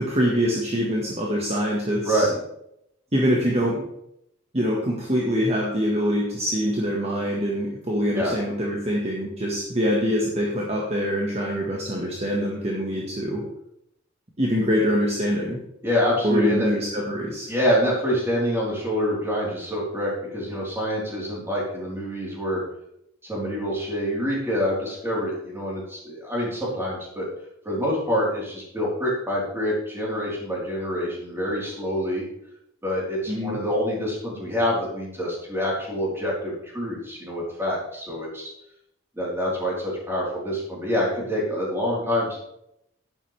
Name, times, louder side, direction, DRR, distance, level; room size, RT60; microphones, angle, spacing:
voice 1, 0.0-2.3 3.1-3.8 4.5-13.4 14.4-15.6 16.2-17.5 33.3-33.6, equal, 35° right, -3 dB, 1.7 m, -24 dB
voice 2, 15.8-16.7 17.5-22.6 23.2-27.3 27.6-32.2 32.8-38.5 39.2-42.4, equal, 15° right, -5 dB, 4.2 m, -26 dB
11.0 x 10.0 x 3.5 m, 0.77 s
head